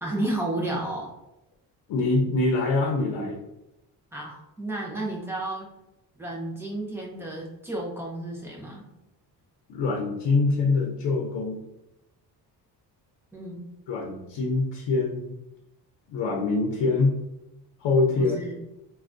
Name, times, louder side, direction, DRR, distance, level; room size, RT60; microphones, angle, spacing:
voice 1, 0.0-1.1 4.1-5.7 6.2-8.9 13.3-13.7 18.2-18.6, right 1 dB, 5° right, -4 dB, 0.5 m, -32 dB
voice 2, 1.9-3.4 9.7-11.6 13.9-15.4 16.1-17.1 17.8-18.4, left 3 dB, 85° left, -1 dB, 0.7 m, -24 dB
3.3 x 2.3 x 2.5 m, 0.91 s
cardioid pair, 170°, 41 cm